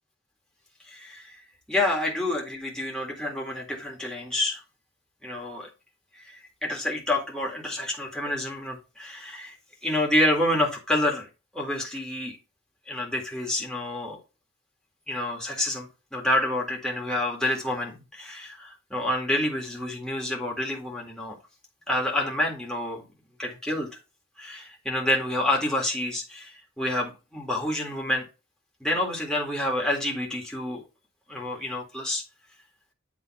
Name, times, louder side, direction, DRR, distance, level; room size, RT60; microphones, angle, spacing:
voice 1, 0.9-1.4 1.7-4.6 5.2-5.7 6.2-9.5 9.8-11.3 11.5-12.4 12.9-14.2 15.1-21.4 21.9-23.0 23.4-23.9 24.4-28.3 28.8-30.8 31.3-32.2, left 1 dB, 5° left, -1 dB, 1.8 m, -28 dB
8.3 x 3.5 x 4.2 m, 0.29 s
head